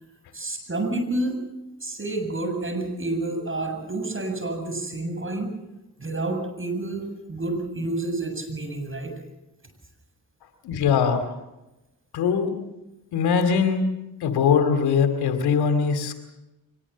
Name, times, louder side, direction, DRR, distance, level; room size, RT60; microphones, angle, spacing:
voice 1, 0.3-1.4 1.8-5.6 6.0-9.1, right 2 dB, 35° right, 5 dB, 7.8 m, -29 dB
voice 2, 10.6-11.2 12.1-12.5 13.1-13.8 14.2-16.2, left 6 dB, 90° left, 7 dB, 2.5 m, -21 dB
23.5 x 20.5 x 7.3 m, 0.96 s
supercardioid pair, 50°, 38 cm